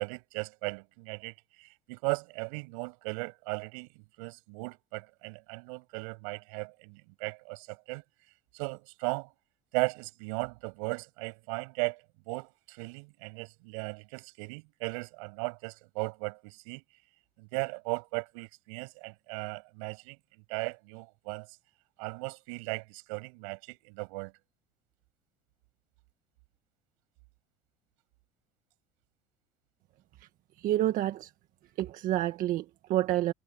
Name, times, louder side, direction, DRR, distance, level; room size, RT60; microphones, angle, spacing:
voice 1, 0.0-8.0 8.5-9.3 9.7-16.8 17.4-21.5 22.0-24.3, right 32 dB, 85° right, 7.8 m, -37 dB
voice 2, 30.6-31.3 31.8-33.3, right 14 dB, 60° right, 1.6 m, -28 dB
supercardioid pair, 110°, 16 cm